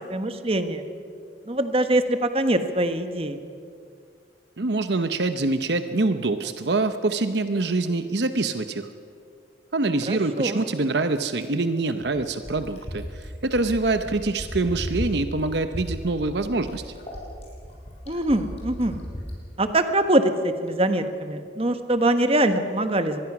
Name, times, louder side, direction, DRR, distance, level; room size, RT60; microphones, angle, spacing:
voice 1, 0.1-0.8 1.5-3.4 10.1-10.6 18.1-19.0 19.6-23.2, right 1 dB, 30° right, 8 dB, 1.3 m, -23 dB
voice 2, 4.6-8.9 9.7-16.9, right 3 dB, 65° right, 9 dB, 0.9 m, -25 dB
Fill (with liquid), 11.2-19.4 20.7-20.8, equal, 35° left, 6.3 m, -36 dB
25.0 x 20.5 x 6.1 m, 2.3 s
head